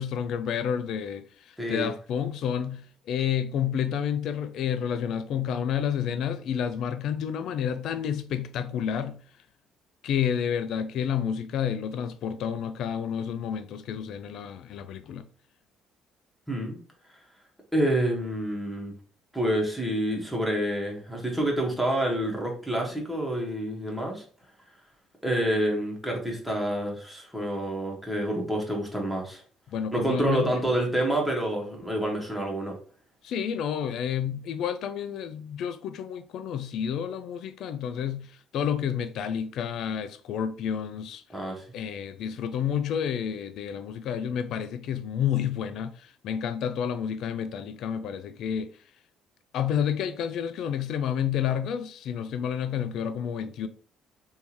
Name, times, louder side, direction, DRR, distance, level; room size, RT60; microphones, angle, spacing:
voice 1, 0.0-9.2 10.0-15.3 29.7-30.5 33.2-41.2 41.7-48.7 49.5-53.7, left 8 dB, 70° left, 0.3 m, -30 dB
voice 2, 1.6-1.9 16.5-16.8 17.7-18.9 19.3-24.2 25.2-29.4 29.9-32.8 41.3-41.6, right 1 dB, ahead, 1.4 m, -28 dB
3.5 x 2.6 x 3.0 m
supercardioid pair, 75°, 0 cm